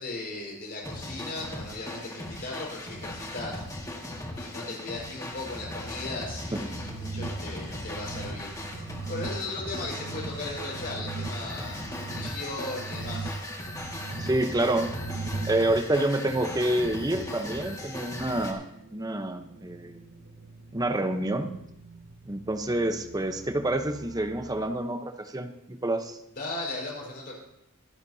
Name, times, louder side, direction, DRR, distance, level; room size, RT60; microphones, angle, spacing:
voice 1, 0.0-3.7 4.3-13.4 26.3-27.3, left 2 dB, 45° left, -2 dB, 5.0 m, -37 dB
sound 1, 0.8-18.5, left 1 dB, 15° left, 1.9 m, -38 dB
sound 2, 5.3-24.7, right 1 dB, 65° right, 2.9 m, -49 dB
sound 3, 6.6-15.7, right 4 dB, 45° right, 0.8 m, -39 dB
voice 2, 14.2-14.9 15.5-18.6 18.9-20.0 20.7-21.5 22.3-26.2, right 1 dB, 15° right, 7 dB, 0.9 m, -28 dB
24.5 x 10.5 x 2.8 m, 0.83 s
head